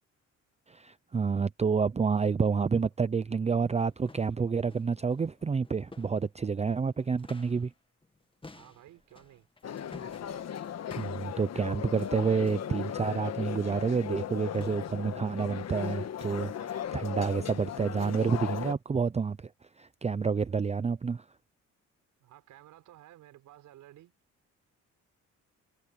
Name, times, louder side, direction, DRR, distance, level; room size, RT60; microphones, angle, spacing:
voice 1, 0.7-7.7 11.0-19.5 19.8-21.2, right 5 dB, 20° right, 0.6 m, -29 dB
sound 1, 2.9-3.0 3.5-7.8 8.0-12.9 14.0-14.3 14.5-15.2 15.5-15.8 16.3-16.5 16.9-17.1 17.5-17.8 18.3-18.4 19.0-19.1, left 3 dB, 15° left, 1.7 m, -54 dB
voice 2, 8.5-9.5 22.2-24.1, right 14 dB, 85° right, 6.7 m, -54 dB
sound 2, 9.6-18.7, left 9 dB, 60° left, 1.5 m, -37 dB
cardioid pair, 90°, 30 cm